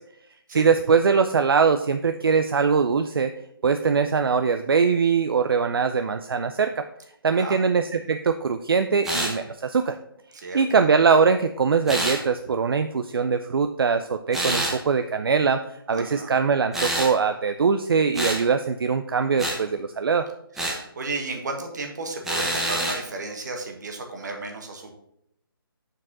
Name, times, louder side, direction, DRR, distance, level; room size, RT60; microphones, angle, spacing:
voice 1, 0.5-3.3 3.6-6.8 7.2-10.0 10.5-15.6 15.9-20.3, right 5 dB, 70° right, 8 dB, 0.5 m, -22 dB
sound 1, 9.0-9.4 11.9-12.2 14.3-14.8 16.7-17.1 18.1-18.4 19.4-19.6 20.6-20.8 22.2-23.0, right 1 dB, 5° right, 0.6 m, -26 dB
voice 2, 15.9-16.3 20.5-24.9, right 3 dB, 50° right, 3 dB, 1.5 m, -33 dB
6.1 x 4.7 x 6.0 m, 0.76 s
hypercardioid pair, 165°, 12 cm